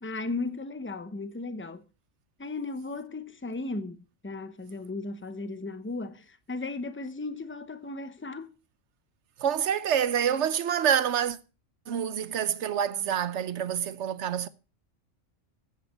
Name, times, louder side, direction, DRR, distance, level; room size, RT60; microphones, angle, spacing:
voice 1, 0.0-1.8 2.4-4.0 4.2-8.5, left 3 dB, 10° left, 0.8 m, -36 dB
voice 2, 9.4-11.4 11.9-14.5, right 9 dB, 65° right, 1.1 m, -27 dB
13.5 x 9.6 x 4.3 m
omnidirectional pair, 1.4 m